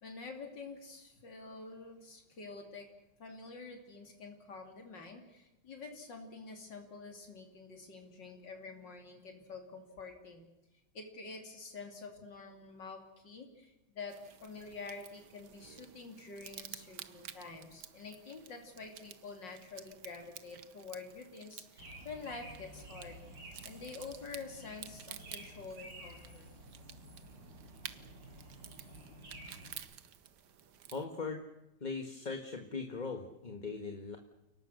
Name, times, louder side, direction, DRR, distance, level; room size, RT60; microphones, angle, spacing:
voice 1, 0.0-2.9 3.2-10.5 10.9-23.2 23.6-26.5, left 4 dB, 75° left, 3 dB, 3.5 m, -48 dB
sound 1, 14.1-31.1, right 9 dB, 70° right, 1.6 m, -52 dB
sound 2, 21.8-29.8, right 1 dB, 85° right, 7.2 m, -52 dB
voice 2, 30.9-31.4 31.8-34.2, left 4 dB, 25° left, 4 dB, 1.5 m, -39 dB
29.5 x 18.5 x 6.5 m, 0.97 s
omnidirectional pair, 2.0 m